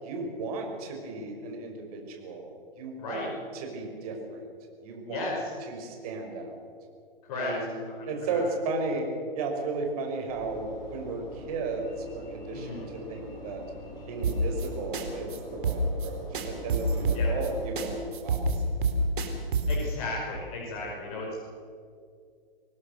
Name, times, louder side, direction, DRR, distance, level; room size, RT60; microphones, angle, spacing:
voice 1, 0.0-4.4 4.8-5.3 5.7-6.6 7.3-7.8 8.1-9.1 9.3-11.9 12.1-13.6 14.1-18.6 19.0-19.1 20.9-21.0, right 3 dB, 40° right, 3 dB, 5.5 m, -34 dB
voice 2, 5.0-5.5 7.3-7.6 8.0-8.4 12.5-12.8 17.1-17.3 19.7-21.4, left 3 dB, 40° left, -2 dB, 5.6 m, -35 dB
Train / Engine / Alarm, 10.3-18.5, equal, 15° left, 6.5 m, -44 dB
sound 1, 14.2-14.7 14.9-15.0 15.3-15.4 15.6-16.1 16.3-17.5 17.8-17.9 18.1-19.8, right 4 dB, 55° right, 4.1 m, -27 dB
26.0 x 19.5 x 6.7 m, 2.3 s
figure-of-eight pair, 135°, 30 cm